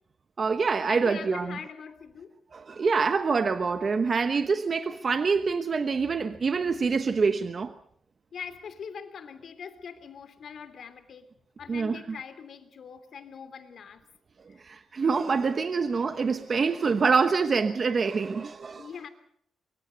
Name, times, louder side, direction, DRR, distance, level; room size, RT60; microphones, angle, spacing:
voice 1, 0.4-1.6 2.5-7.7 11.7-12.0 14.6-18.9, right 5 dB, 35° right, 9 dB, 1.1 m, -26 dB
voice 2, 0.9-2.3 8.3-11.3 11.6-14.0 14.5-14.6 18.8-19.1, left 6 dB, 55° left, 11 dB, 3.1 m, -42 dB
25.0 x 24.0 x 5.3 m, 0.66 s
wide cardioid pair, 150°, 0 cm